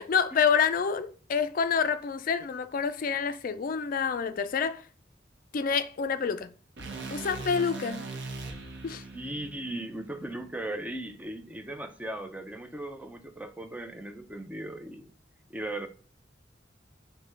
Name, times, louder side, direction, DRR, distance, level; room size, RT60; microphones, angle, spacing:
voice 1, 0.0-4.8 5.5-6.5 7.1-8.0 8.8-9.0, left 6 dB, 50° left, 0.4 m, -27 dB
sound 1, 6.8-10.9, right 3 dB, 70° right, 0.8 m, -41 dB
voice 2, 9.1-15.1 15.5-15.9, right 1 dB, 10° right, 0.5 m, -38 dB
6.5 x 2.2 x 3.3 m
head